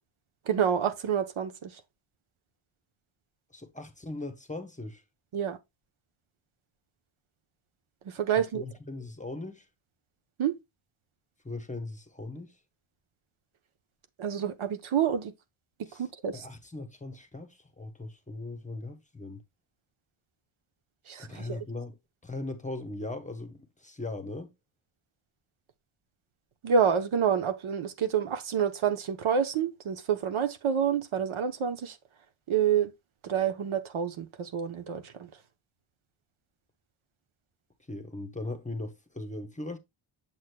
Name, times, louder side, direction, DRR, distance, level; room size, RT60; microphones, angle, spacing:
voice 1, 0.5-1.8 5.3-5.6 8.0-8.6 10.4-10.6 14.2-15.3 15.9-16.4 21.1-21.6 26.6-32.0 32.5-32.9 33.2-35.3, right 8 dB, 75° right, 0.9 m, -28 dB
voice 2, 3.5-5.0 8.5-9.7 11.4-12.6 15.9-16.0 16.3-19.4 21.2-22.0 22.2-24.5 37.9-39.8, left 2 dB, 15° left, 0.9 m, -39 dB
7.3 x 6.3 x 2.2 m
wide cardioid pair, 95°, 49 cm